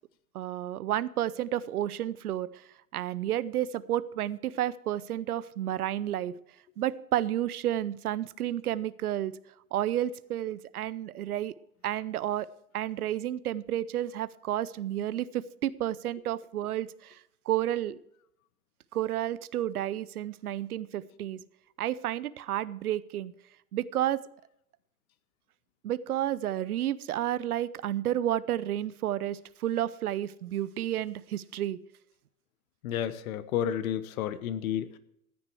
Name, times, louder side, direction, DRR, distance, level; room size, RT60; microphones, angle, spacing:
voice 1, 0.3-2.5 2.9-6.3 6.8-9.3 9.7-11.5 11.8-12.5 12.7-17.2 17.5-18.0 18.9-21.4 21.8-23.3 23.7-24.2 25.8-31.8, right 12 dB, 80° right, 18 dB, 0.7 m, -31 dB
voice 2, 32.8-35.0, left 10 dB, 65° left, 14 dB, 1.2 m, -31 dB
14.5 x 9.6 x 4.7 m, 0.74 s
hypercardioid pair, 85°, 44 cm